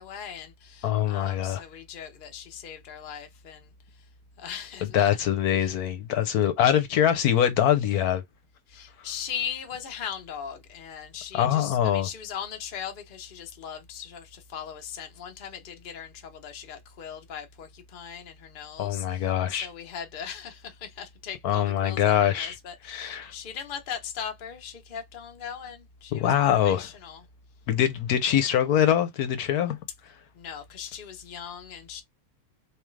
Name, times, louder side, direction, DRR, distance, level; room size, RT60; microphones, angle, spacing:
voice 1, 0.0-4.1 4.4-5.2 5.6-5.7 8.7-27.2 30.3-32.0, left 8 dB, 40° left, 0.8 m, -39 dB
voice 2, 0.8-1.6 4.9-8.2 11.3-12.1 18.8-19.7 21.4-22.5 22.9-23.3 26.1-26.9 27.7-29.8, left 10 dB, 75° left, 1.2 m, -23 dB
3.6 x 3.0 x 3.2 m
omnidirectional pair, 1.7 m